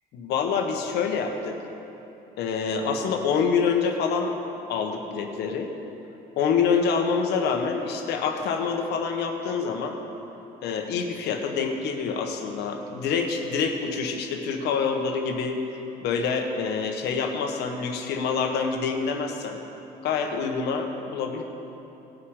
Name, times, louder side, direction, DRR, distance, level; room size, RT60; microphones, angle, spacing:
voice 1, 0.1-1.6 2.4-4.4 4.7-5.7 6.4-10.0 10.6-15.6 16.0-19.6 20.0-21.4, left 5 dB, 80° left, 3 dB, 1.3 m, -26 dB
18.5 x 6.2 x 4.9 m, 3.0 s
cardioid pair, 110°, 17 cm